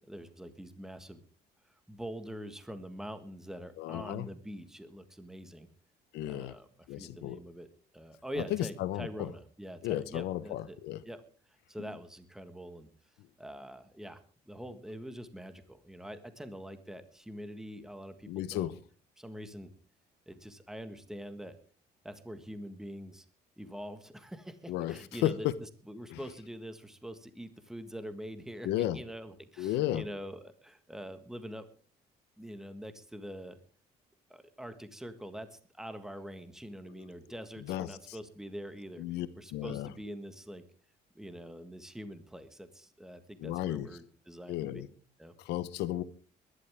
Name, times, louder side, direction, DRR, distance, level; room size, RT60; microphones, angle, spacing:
voice 1, 0.1-1.2 1.7-5.7 6.2-7.7 7.9-10.8 11.1-11.2 11.7-12.9 13.4-14.2 14.5-18.7 19.2-19.7 20.3-21.6 22.0-23.3 23.6-31.7 32.4-33.6 34.3-39.0 39.4-40.7 41.2-44.8 45.2-45.3, equal, 5° right, 1.6 m, -44 dB
voice 2, 3.8-4.3 6.1-6.6 6.9-7.4 8.4-9.3 9.8-11.0 18.3-18.8 24.7-25.5 26.1-26.2 28.6-29.0 29.6-30.1 36.9-37.1 37.6-38.2 39.0-39.9 43.4-43.9 44.5-44.9 45.4-46.0, left 13 dB, 85° left, 1.0 m, -34 dB
21.0 x 11.5 x 3.6 m
cardioid pair, 110°, 17 cm